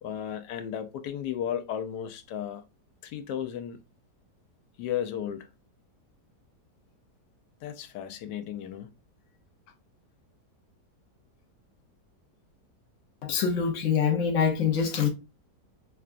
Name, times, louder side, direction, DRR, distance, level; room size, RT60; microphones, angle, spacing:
voice 1, 0.0-2.6 3.0-3.8 4.8-5.5 7.6-8.9, left 9 dB, 85° left, 1.2 m, -34 dB
voice 2, 13.2-15.1, left 7 dB, 65° left, 0.8 m, -25 dB
5.7 x 2.2 x 2.4 m
omnidirectional pair, 1.8 m